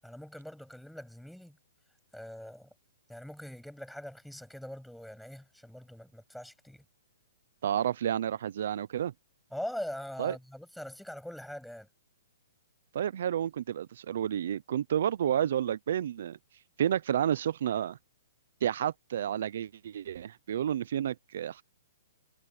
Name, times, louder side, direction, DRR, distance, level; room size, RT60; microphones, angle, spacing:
voice 1, 0.0-1.6 2.1-2.7 3.1-6.8 9.5-11.9, left 1 dB, ahead, 7.5 m, -42 dB
voice 2, 7.6-9.1 10.2-10.4 12.9-16.4 16.8-18.0 18.6-21.6, right 10 dB, 55° right, 0.6 m, -30 dB
hypercardioid pair, 160°, 0 cm